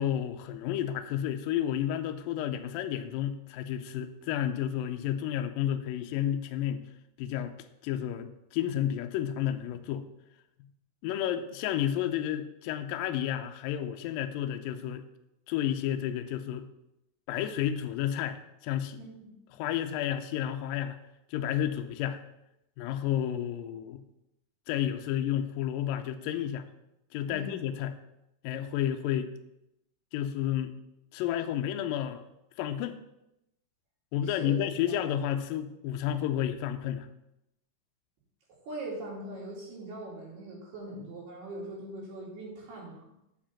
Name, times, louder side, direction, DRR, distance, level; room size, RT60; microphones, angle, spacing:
voice 1, 0.0-6.8 7.2-7.6 7.8-10.0 11.0-15.1 15.5-16.7 17.3-19.0 19.5-21.0 21.3-22.2 22.8-24.0 24.7-26.7 27.1-28.0 28.4-29.3 30.1-30.7 31.1-32.3 32.6-33.0 34.1-37.1, left 10 dB, 85° left, 8 dB, 2.0 m, -31 dB
voice 2, 19.0-19.3 27.3-27.5 34.2-34.5 34.8-35.0 38.6-43.1, right 1 dB, 75° right, -4 dB, 4.5 m, -41 dB
8.0 x 5.1 x 7.1 m, 0.86 s
omnidirectional pair, 4.6 m